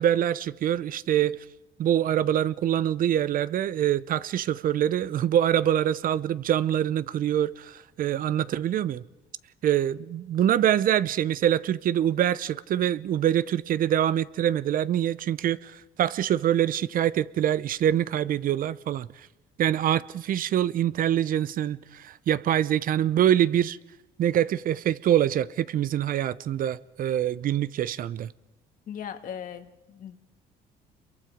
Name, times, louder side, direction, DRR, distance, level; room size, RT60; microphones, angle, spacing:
voice 1, 0.0-1.4 1.8-9.0 9.6-19.1 19.6-23.8 24.2-28.3, right 10 dB, 55° right, 0.7 m, -25 dB
voice 2, 28.9-30.2, left 8 dB, 55° left, 2.0 m, -38 dB
27.0 x 23.0 x 5.1 m
cardioid pair, 110°, 17 cm